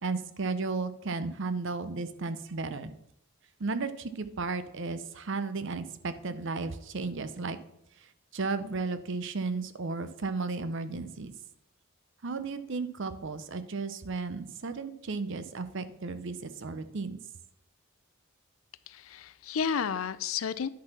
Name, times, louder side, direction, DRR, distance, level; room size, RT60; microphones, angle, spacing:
voice 1, 0.0-2.9 3.6-7.6 8.0-11.3 12.2-17.2, right 3 dB, 60° right, 12 dB, 0.6 m, -34 dB
voice 2, 18.9-20.7, left 7 dB, 75° left, 16 dB, 0.5 m, -32 dB
10.5 x 4.1 x 5.9 m, 0.82 s
head